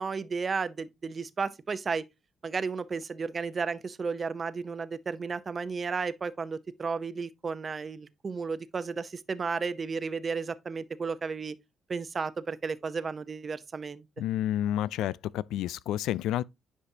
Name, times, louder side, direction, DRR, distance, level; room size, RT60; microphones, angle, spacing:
voice 1, 0.0-2.0 2.4-11.5 11.9-14.0, right 5 dB, 40° right, 0.7 m, -33 dB
voice 2, 14.2-16.4, left 12 dB, 90° left, 0.3 m, -30 dB
9.9 x 5.1 x 2.7 m
cardioid pair, 90°, 0 cm